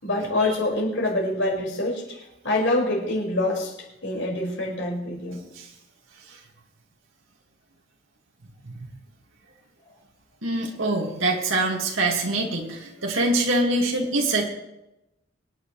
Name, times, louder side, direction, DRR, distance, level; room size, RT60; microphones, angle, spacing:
voice 1, 0.0-2.0 2.4-3.7 4.0-5.4, left 2 dB, 70° left, -2 dB, 5.3 m, -25 dB
voice 2, 10.4-14.5, right 2 dB, 85° right, -1 dB, 2.2 m, -24 dB
25.0 x 9.8 x 3.3 m, 0.91 s
head